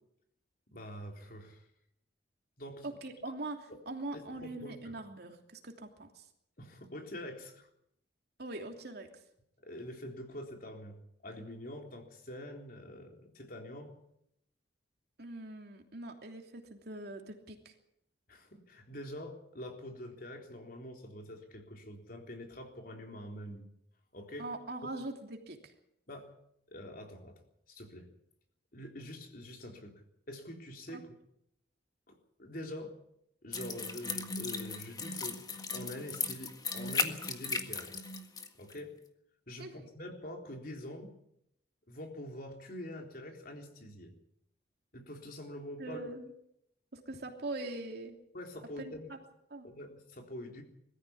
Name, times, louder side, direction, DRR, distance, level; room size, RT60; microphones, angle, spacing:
voice 1, 0.7-1.7 2.6-2.9 3.3-3.4 3.7-3.8 4.1-4.9 6.6-7.7 9.6-11.0 11.2-14.0 18.3-23.7 24.1-24.5 26.1-26.3 26.7-27.4 27.7-28.1 28.7-30.0 30.3-31.1 32.1-32.9 33.4-35.4 35.7-38.1 38.6-38.9 39.5-41.1 41.9-44.1 44.9-46.0 48.3-49.1 49.6-50.6, left 1 dB, 50° left, 2 dB, 3.8 m, -45 dB
voice 2, 2.8-3.6 3.9-6.2 8.4-9.1 15.2-17.7 24.4-25.7 30.9-31.0 39.6-39.7 45.8-46.3 46.9-48.2 48.8-49.2 49.5-49.7, right 2 dB, 55° right, 3 dB, 3.1 m, -42 dB
sound 1, 33.5-38.5 38.7-38.8, left 4 dB, 20° left, 1.7 m, -37 dB
22.0 x 14.5 x 8.7 m, 0.75 s
head